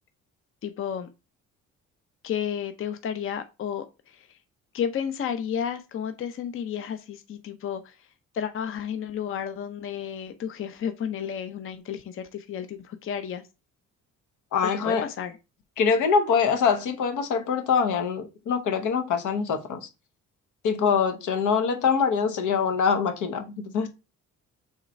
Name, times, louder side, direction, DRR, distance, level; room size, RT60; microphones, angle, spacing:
voice 1, 0.6-1.1 2.2-4.4 4.7-8.1 8.3-13.4 14.6-15.4, left 8 dB, 45° left, 0.6 m, -32 dB
voice 2, 14.5-15.0 15.8-19.9 20.6-23.9, left 6 dB, 80° left, 0.9 m, -24 dB
3.7 x 3.1 x 4.3 m
cardioid pair, 90°, 30 cm